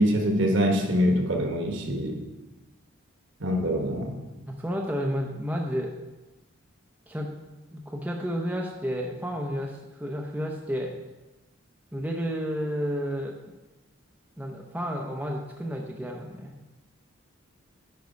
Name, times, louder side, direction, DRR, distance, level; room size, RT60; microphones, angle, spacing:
voice 1, 0.0-2.2 3.4-4.2, equal, 60° right, 2 dB, 1.3 m, -24 dB
voice 2, 4.5-5.9 7.1-7.3 7.7-10.9 11.9-13.4 14.4-16.5, equal, 5° right, 0 dB, 0.6 m, -31 dB
9.5 x 5.5 x 5.3 m, 1.1 s
head